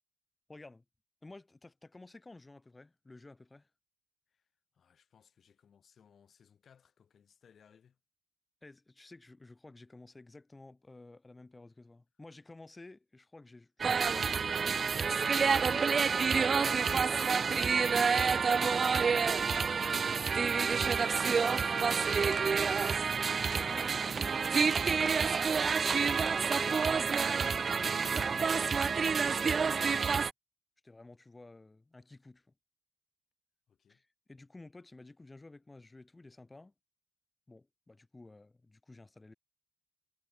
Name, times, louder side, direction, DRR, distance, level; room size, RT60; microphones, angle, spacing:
voice 1, 0.5-0.8 1.2-3.7 8.6-15.1 16.1-17.8 18.5-19.5 21.0-23.1 23.5-27.4 28.1-30.3 30.8-32.5 33.9-36.7 37.5-39.3, left 2 dB, 15° left, 5.6 m, -53 dB
voice 2, 4.7-8.0 33.7-34.0, left 7 dB, 45° left, 4.8 m, -64 dB
sound 1, 13.8-30.3, right 5 dB, 35° right, 0.3 m, -28 dB
cardioid pair, 100°, 0 cm